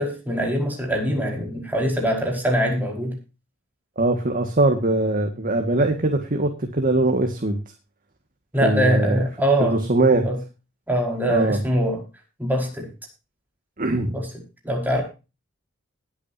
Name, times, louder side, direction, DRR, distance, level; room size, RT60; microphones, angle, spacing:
voice 1, 0.0-3.2 8.5-9.8 10.1-10.4 10.9-12.0 12.4-12.9 14.1-14.3 14.6-15.0, equal, 10° right, 0 dB, 5.2 m, -23 dB
voice 2, 4.0-7.6 8.6-9.2 9.6-10.2 11.3-11.6 13.8-14.2, right 2 dB, 45° right, 5 dB, 1.9 m, -21 dB
20.0 x 9.2 x 2.8 m, 0.31 s
head